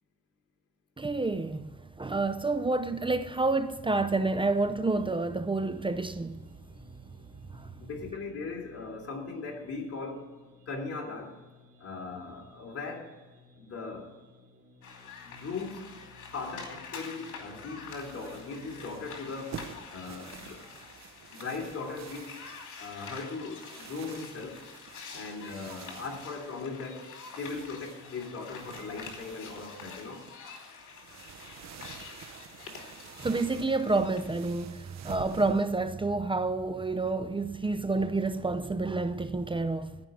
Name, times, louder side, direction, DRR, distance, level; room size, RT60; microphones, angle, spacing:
voice 1, 1.0-1.7 2.0-6.4 7.5-7.7 33.2-39.9, right 3 dB, 15° right, 0.6 m, -29 dB
sound 1, 5.6-19.4, left 2 dB, 40° right, 3.2 m, -57 dB
voice 2, 7.8-10.3 10.7-11.4 11.8-13.2 13.6-14.1 15.2-16.0 16.3-20.7 21.3-22.3 22.8-24.6 25.1-27.1 27.4-30.3, left 4 dB, 50° left, 3.1 m, -39 dB
sound 2, 14.8-34.3, left 5 dB, 75° left, 2.7 m, -47 dB
sound 3, 17.9-35.8, right 8 dB, 65° right, 1.0 m, -49 dB
14.0 x 5.3 x 9.2 m
cardioid pair, 90°, 30 cm